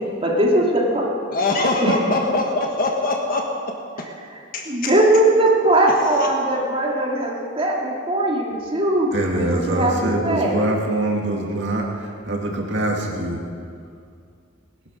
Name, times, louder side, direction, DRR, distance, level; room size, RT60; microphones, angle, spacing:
voice 1, 0.2-1.1 1.8-1.9 4.7-10.7, right 1 dB, 30° right, -2 dB, 2.4 m, -20 dB
voice 2, 1.3-3.7 4.5-4.9 5.9-6.6, left 2 dB, 50° left, 1 dB, 1.4 m, -23 dB
voice 3, 9.1-13.4, right 1 dB, 70° right, 0 dB, 2.3 m, -24 dB
19.5 x 11.0 x 6.3 m, 2.3 s
head